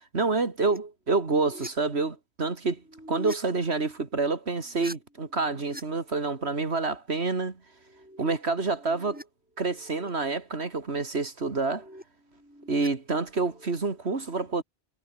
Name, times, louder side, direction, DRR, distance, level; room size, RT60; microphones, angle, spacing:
voice 1, 0.1-2.8 3.1-7.6 8.2-9.2 9.6-11.9 12.7-14.6, right 3 dB, 80° right, 2.6 m, -28 dB
sound 1, 0.7-0.8 1.1-1.7 2.8-3.4 4.6-5.8 6.1-6.6 7.7-9.2 9.6-10.1 11.4-12.9 13.2-13.7, equal, 10° right, 5.7 m, -44 dB
omnidirectional pair, 1.1 m